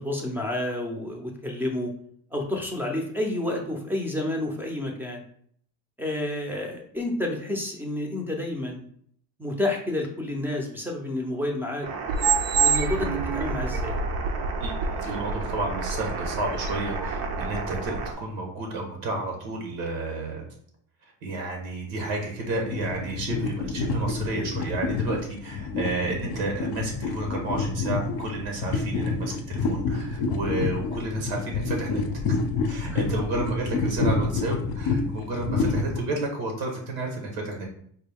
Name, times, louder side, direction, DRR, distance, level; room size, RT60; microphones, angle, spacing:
voice 1, 0.0-1.9 2.3-5.2 6.0-8.8 9.4-11.9 12.5-14.0 32.9-33.0, left 1 dB, 5° right, 1 dB, 0.5 m, -30 dB
sound 1, 11.8-18.1, right 4 dB, 55° right, 0.6 m, -27 dB
voice 2, 14.6-20.5 21.2-32.4 32.6-37.7, right 2 dB, 85° right, 1 dB, 1.4 m, -31 dB
sound 2, 22.5-36.0, left 4 dB, 55° left, 0.5 m, -28 dB
4.4 x 2.2 x 3.5 m, 0.63 s
cardioid pair, 135°, 45 cm